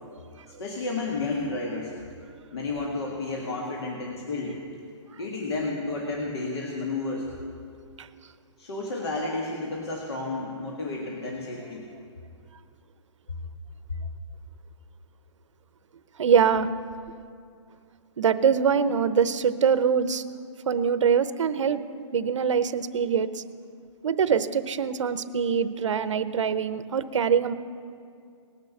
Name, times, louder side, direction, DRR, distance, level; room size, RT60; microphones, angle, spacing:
voice 1, 0.5-2.0 2.5-4.6 5.2-7.3 8.6-11.9, left 3 dB, 55° left, -1 dB, 1.7 m, -31 dB
voice 2, 16.2-16.7 18.2-20.2 20.7-21.8 22.1-23.4 24.0-27.5, right 7 dB, 70° right, 13 dB, 0.7 m, -23 dB
18.5 x 6.7 x 7.2 m, 2.3 s
hypercardioid pair, 175°, 16 cm